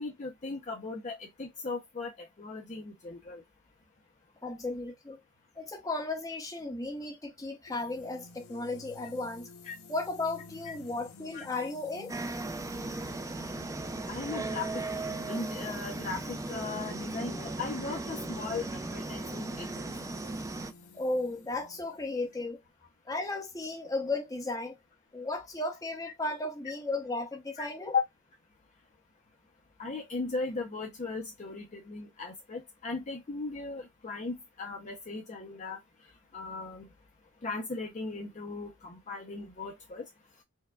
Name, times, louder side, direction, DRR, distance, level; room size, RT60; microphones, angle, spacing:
voice 1, 0.0-3.4 9.6-9.7 10.7-10.8 11.3-11.4 14.1-14.8 15.3-20.1 27.6-27.7 27.9-28.0 29.8-35.8 36.3-36.9 37.4-40.0, left 4 dB, 35° left, 0.5 m, -37 dB
voice 2, 4.4-5.2 5.6-9.5 9.9-12.1 20.9-22.6 23.1-24.8 25.1-27.9, left 2 dB, 15° left, 0.9 m, -35 dB
sound 1, 7.7-22.4, left 2 dB, 85° left, 0.6 m, -50 dB
sound 2, 12.1-20.7, right 2 dB, 15° right, 0.3 m, -37 dB
4.6 x 2.2 x 2.2 m
head